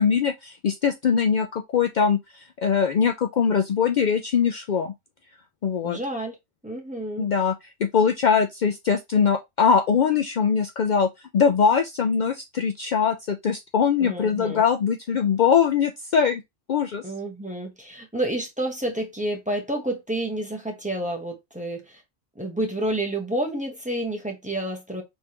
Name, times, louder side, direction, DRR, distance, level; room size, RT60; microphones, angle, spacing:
voice 1, 0.0-4.9 5.6-6.0 7.2-7.5 7.8-11.1 11.3-16.4 16.7-17.0, left 6 dB, 75° left, 0.4 m, -22 dB
voice 2, 5.8-6.4 6.6-7.3 14.0-14.6 17.0-22.0 22.4-25.0, right 1 dB, 5° right, 0.9 m, -29 dB
4.4 x 3.4 x 2.9 m
omnidirectional pair, 1.3 m